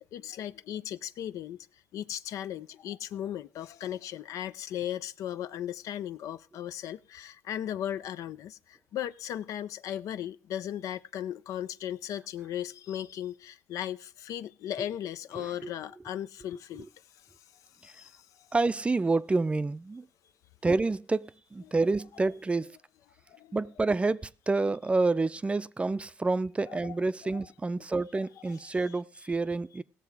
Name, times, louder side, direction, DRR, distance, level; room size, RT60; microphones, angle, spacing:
voice 1, 0.0-1.7 1.9-16.9 17.8-18.5 23.3-23.6 26.7-26.9 27.3-27.4 28.5-28.6, left 11 dB, 75° left, 0.6 m, -37 dB
voice 2, 15.4-15.7 17.8-17.9 18.5-20.1 20.6-22.8 23.5-29.8, right 3 dB, 20° right, 0.5 m, -28 dB
17.0 x 6.7 x 4.7 m
cardioid pair, 80°, 6 cm